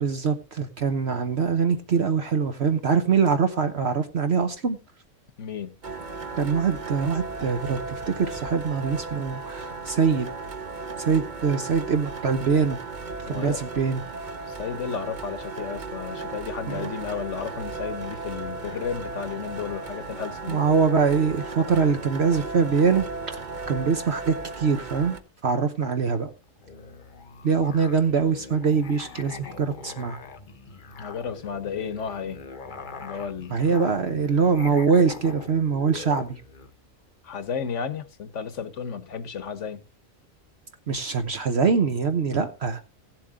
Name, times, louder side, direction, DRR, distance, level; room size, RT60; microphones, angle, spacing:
voice 1, 0.0-4.8 6.4-10.3 11.0-12.8 13.3-14.0 16.7-16.9 20.5-23.4 23.7-26.3 27.4-30.2 33.5-36.4 40.9-42.8, right 5 dB, 55° right, 1.2 m, -23 dB
voice 2, 5.4-5.7 13.3-13.6 14.4-20.6 31.0-32.5 33.0-33.8 37.2-39.8, left 7 dB, 65° left, 1.3 m, -33 dB
sound 1, 5.8-25.2, right 3 dB, 40° right, 1.0 m, -36 dB
Musical instrument, 26.6-36.7, left 4 dB, 40° left, 1.0 m, -42 dB
16.5 x 7.6 x 3.7 m
omnidirectional pair, 1.4 m